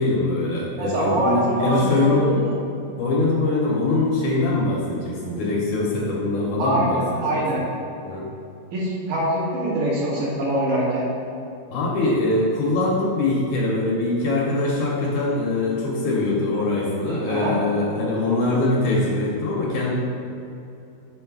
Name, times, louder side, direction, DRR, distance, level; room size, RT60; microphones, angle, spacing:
voice 1, 0.0-2.3 3.0-7.4 8.0-8.3 11.7-19.9, left 2 dB, 70° left, -3 dB, 2.1 m, -22 dB
voice 2, 0.8-2.5 6.6-7.6 8.7-11.0 17.3-17.6, right 1 dB, 65° right, -7 dB, 3.0 m, -24 dB
6.8 x 4.3 x 5.9 m, 2.7 s
omnidirectional pair, 4.0 m